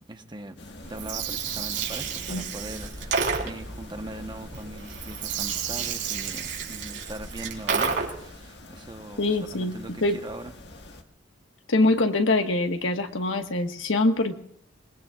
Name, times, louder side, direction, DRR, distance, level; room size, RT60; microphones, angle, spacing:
voice 1, 0.1-0.6 0.9-9.2 9.5-10.5, right 1 dB, 25° right, 6 dB, 1.1 m, -40 dB
sound 1, 0.6-11.0, left 1 dB, 55° left, 1.7 m, -44 dB
Gurgling, 0.8-8.3, right 6 dB, 60° right, 4.0 m, -31 dB
voice 2, 9.2-10.2 11.7-14.3, left 2 dB, 75° left, 5 dB, 1.5 m, -24 dB
26.5 x 21.5 x 2.5 m, 0.68 s
head